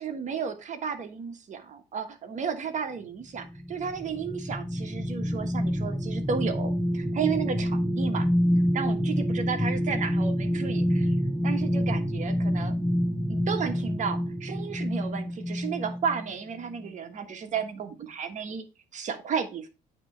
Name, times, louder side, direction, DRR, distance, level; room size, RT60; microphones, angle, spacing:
voice 1, 0.0-8.3 8.7-11.1 11.4-12.7 13.3-18.6 18.9-19.7, right 6 dB, 45° right, 6 dB, 1.3 m, -33 dB
sound 1, 3.3-16.3 16.7-16.9, equal, 5° left, 1.0 m, -27 dB
8.9 x 3.1 x 4.4 m, 0.29 s
cardioid pair, 110°, 17 cm